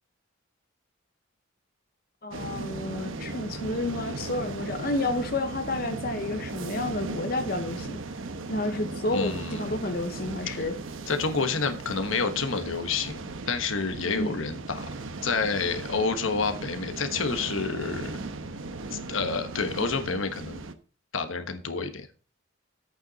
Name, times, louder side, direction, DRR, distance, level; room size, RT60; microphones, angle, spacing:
voice 1, 2.2-8.0 8.5-10.7 14.2-14.4, left 2 dB, 45° left, 7 dB, 0.9 m, -30 dB
sound 1, 2.3-20.7, right 3 dB, 80° right, 1.0 m, -37 dB
voice 2, 9.1-9.8 11.1-14.9 15.2-18.2 18.9-20.6 21.1-22.1, left 4 dB, 75° left, 8 dB, 1.2 m, -29 dB
10.5 x 8.6 x 4.0 m, 0.36 s
head